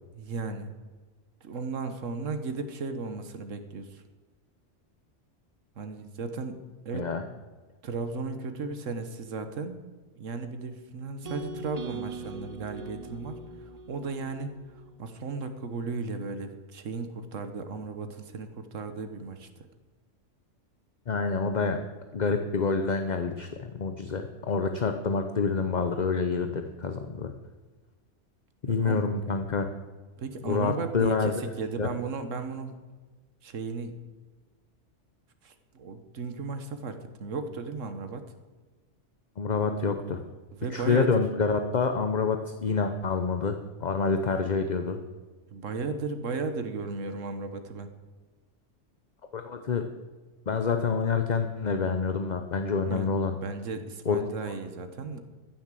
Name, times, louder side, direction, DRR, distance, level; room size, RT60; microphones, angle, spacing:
voice 1, 0.1-0.7 1.4-4.0 5.8-6.6 6.8-7.1 7.8-9.8 10.2-13.3 13.6-19.5 28.7-29.0 30.2-32.8 33.4-34.0 35.4-38.2 40.6-41.1 45.5-47.9 52.9-55.2, right 4 dB, 90° right, 8 dB, 1.5 m, -35 dB
sound 1, 11.2-15.4, right 4 dB, 35° right, 0.8 m, -41 dB
voice 2, 21.1-21.8 22.1-27.3 28.6-29.7 30.4-31.9 39.4-40.2 40.7-45.0 49.3-49.9 50.5-53.3 54.1-54.2, left 5 dB, 40° left, 7 dB, 0.8 m, -27 dB
15.0 x 7.2 x 7.6 m, 1.3 s
omnidirectional pair, 1.3 m